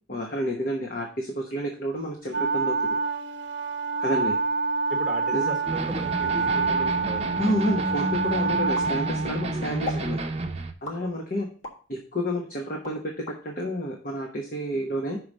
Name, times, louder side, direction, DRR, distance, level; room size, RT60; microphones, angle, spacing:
voice 1, 0.1-3.0 4.0-4.3 5.3-5.5 7.4-10.2 10.8-11.5 11.9-15.2, equal, 45° left, 1 dB, 1.1 m, -30 dB
Wind instrument woodwind instrument, 2.3-9.8, right 4 dB, 65° right, 0.7 m, -27 dB
voice 2, 4.9-7.4 9.5-9.7 10.1-10.3 11.0-11.2, right 1 dB, ahead, 0 dB, 1.2 m, -37 dB
sound 1, 5.7-10.7, right 2 dB, 30° right, 0.7 m, -31 dB
sound 2, 8.7-9.4 9.8-10.1 10.8-11.8 12.3-13.4, left 2 dB, 90° left, 1.9 m, -37 dB
5.7 x 4.8 x 6.4 m, 0.41 s
head